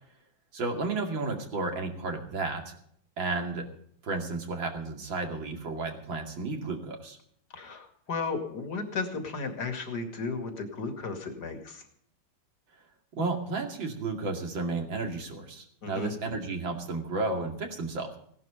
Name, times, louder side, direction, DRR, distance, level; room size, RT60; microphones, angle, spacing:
voice 1, 0.5-2.7 3.2-3.6 4.0-7.2 13.2-18.2, right 3 dB, 75° right, 3 dB, 3.2 m, -32 dB
voice 2, 7.5-11.8 15.8-16.1, left 4 dB, 55° left, 6 dB, 2.8 m, -34 dB
17.5 x 11.0 x 5.1 m, 0.67 s
omnidirectional pair, 2.1 m